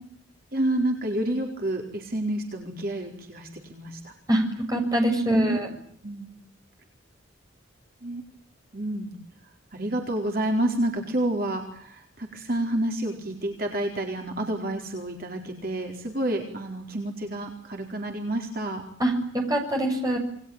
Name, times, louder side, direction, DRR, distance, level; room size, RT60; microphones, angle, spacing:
voice 1, 0.5-4.1 5.4-5.6 6.0-6.3 8.0-8.2 8.7-9.1 9.7-18.8, right 1 dB, 50° right, 2 dB, 4.5 m, -29 dB
voice 2, 4.7-5.7 19.0-20.2, right 1 dB, 20° right, 2 dB, 7.2 m, -23 dB
29.0 x 21.0 x 9.0 m, 0.65 s
head